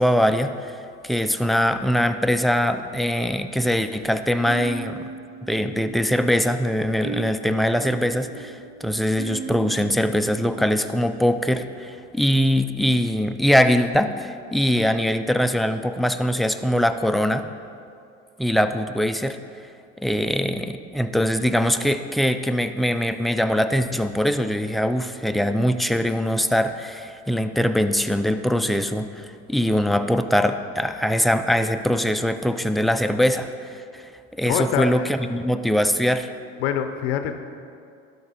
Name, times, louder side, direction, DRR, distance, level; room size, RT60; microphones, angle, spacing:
voice 1, 0.0-5.1 5.5-17.4 18.4-19.4 20.0-34.1 34.4-36.3, equal, ahead, 8 dB, 0.4 m, -22 dB
sound 1, 4.5-11.6, right 4 dB, 45° right, 1.2 m, -38 dB
voice 2, 34.5-35.0 36.6-37.4, left 9 dB, 85° left, 8 dB, 0.5 m, -25 dB
12.0 x 5.2 x 4.1 m, 2.4 s
hypercardioid pair, 75°, 31 cm